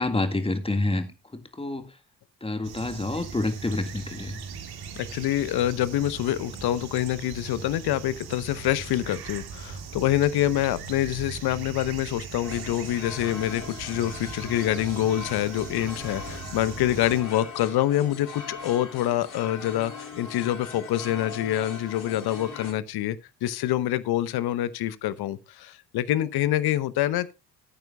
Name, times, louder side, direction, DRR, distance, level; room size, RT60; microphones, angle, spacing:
voice 1, 0.0-1.9 2.4-4.4, left 2 dB, 10° left, 1.9 m, -28 dB
sound 1, 2.6-17.2, right 6 dB, 50° right, 2.0 m, -40 dB
voice 2, 5.0-19.9 20.2-27.3, left 13 dB, 50° left, 1.0 m, -26 dB
sound 2, 12.4-22.7, left 5 dB, 65° left, 5.8 m, -40 dB
18.0 x 9.2 x 2.3 m
figure-of-eight pair, 50°, 49 cm